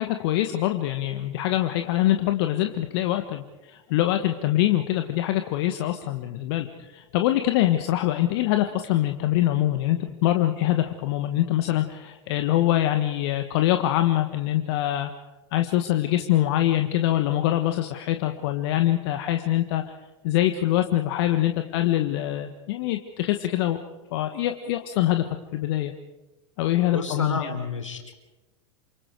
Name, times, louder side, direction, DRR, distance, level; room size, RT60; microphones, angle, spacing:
voice 1, 0.0-15.1 15.5-19.8 20.2-23.8 24.1-25.2 25.5-25.9 26.6-27.5, left 14 dB, 55° left, 7 dB, 1.6 m, -24 dB
voice 2, 26.9-28.2, left 4 dB, 90° left, 4 dB, 4.0 m, -30 dB
28.5 x 26.5 x 4.8 m, 1.1 s
hypercardioid pair, 90°, 16 cm